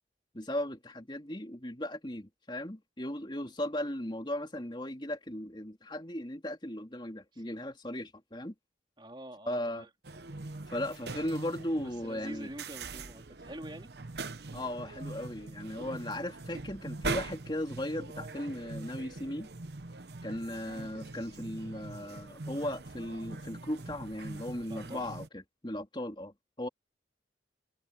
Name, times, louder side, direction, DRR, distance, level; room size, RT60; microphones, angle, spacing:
voice 1, 0.3-8.5 9.4-9.9 10.7-12.5 14.5-19.5 20.2-26.7, left 1 dB, 25° left, 3.2 m, -37 dB
voice 2, 9.0-9.9 11.8-13.9 24.6-25.1, right 1 dB, 25° right, 3.5 m, -46 dB
sound 1, 10.0-25.3, right 3 dB, 60° right, 1.0 m, -42 dB
head